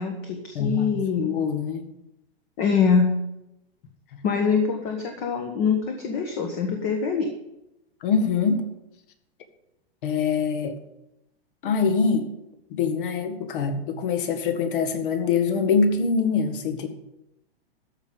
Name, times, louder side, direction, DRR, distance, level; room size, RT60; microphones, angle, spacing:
voice 1, 0.0-1.4 2.6-3.1 4.2-7.3, left 5 dB, 30° left, 3 dB, 1.3 m, -24 dB
voice 2, 0.6-1.9 8.0-8.7 10.0-10.8 11.6-12.3 12.7-16.9, left 5 dB, 55° left, 7 dB, 1.9 m, -24 dB
13.5 x 5.4 x 8.7 m, 0.87 s
supercardioid pair, 165°, 31 cm